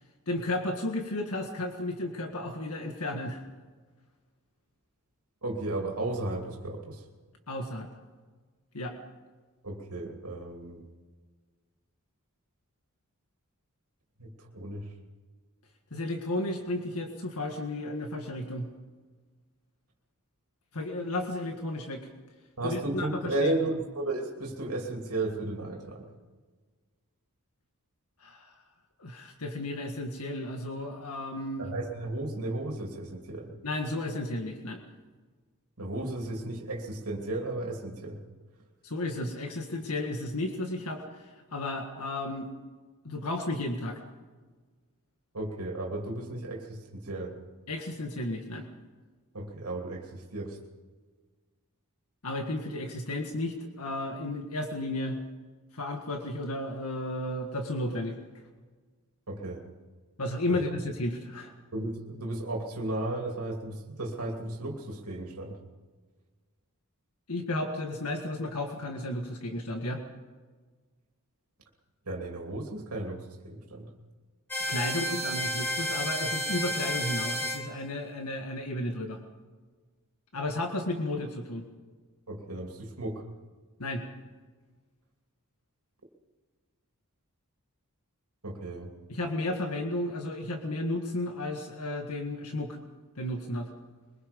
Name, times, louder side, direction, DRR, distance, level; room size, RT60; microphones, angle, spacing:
voice 1, 0.3-3.4 7.5-7.9 8.7-9.0 15.9-18.7 20.7-22.1 22.6-23.6 28.2-28.5 29.0-31.7 33.6-34.8 38.8-41.2 41.5-42.5 43.0-44.0 47.7-48.7 52.2-55.2 55.7-58.2 60.2-61.5 67.3-70.0 74.7-79.2 80.3-81.6 83.8-84.0 89.1-92.8 93.2-93.7, left 1 dB, 75° left, 3 dB, 1.8 m, -33 dB
voice 2, 5.4-7.0 9.6-10.8 14.2-14.9 22.6-26.1 31.6-33.5 35.8-38.2 45.3-47.4 49.3-50.6 59.3-59.6 60.5-60.6 61.7-65.6 72.1-73.9 82.3-83.3 88.4-88.9, right 2 dB, 80° right, 0 dB, 2.9 m, -34 dB
sound 1, 74.5-77.6, left 1 dB, 10° left, 3.4 m, -31 dB
23.5 x 21.5 x 5.3 m, 1.4 s
head